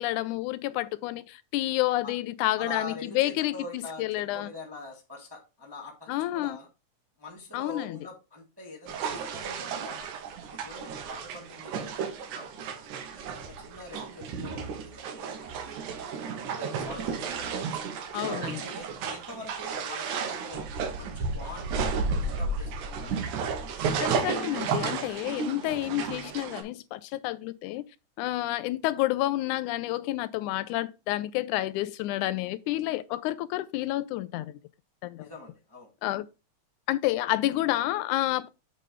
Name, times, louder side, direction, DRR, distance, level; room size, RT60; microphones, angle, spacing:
voice 1, 0.0-3.6 4.0-4.5 6.1-6.6 7.5-8.0 18.1-18.6 24.0-27.8 28.2-34.6 35.0-35.3 36.0-36.3 36.9-38.5, left 16 dB, 85° left, 2.0 m, -29 dB
voice 2, 2.6-6.7 7.2-10.1 10.6-12.9 13.5-17.7 18.2-20.7 21.0-22.0 22.3-23.2 35.2-35.9, left 2 dB, 15° right, 0.9 m, -44 dB
sound 1, 8.9-26.6, right 5 dB, 90° right, 2.6 m, -33 dB
8.4 x 3.9 x 4.9 m
omnidirectional pair, 3.4 m